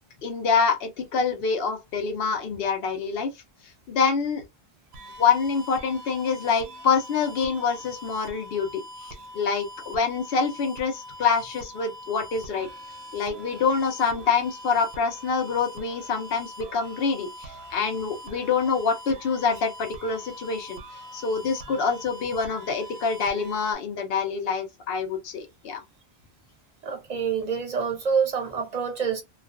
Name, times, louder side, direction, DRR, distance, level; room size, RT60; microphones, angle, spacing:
voice 1, 0.2-3.3 3.9-4.4 5.2-12.7 13.1-20.8 21.1-25.8, left 5 dB, 70° left, 0.9 m, -26 dB
sound 1, 4.9-23.7, equal, 85° right, 0.8 m, -43 dB
voice 2, 26.8-29.2, right 6 dB, 45° right, 0.7 m, -27 dB
2.4 x 2.3 x 2.3 m
omnidirectional pair, 1.1 m